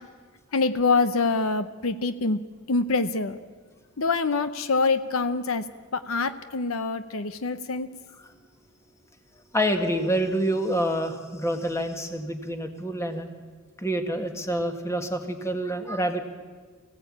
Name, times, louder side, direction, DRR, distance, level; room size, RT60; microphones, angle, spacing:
voice 1, 0.5-2.4 2.7-3.4 4.0-5.7 5.9-7.9, left 3 dB, 70° left, 11 dB, 0.8 m, -25 dB
voice 2, 9.5-13.3 13.8-16.2, right 1 dB, 15° left, 6 dB, 1.8 m, -27 dB
24.5 x 16.5 x 8.7 m, 1.5 s
head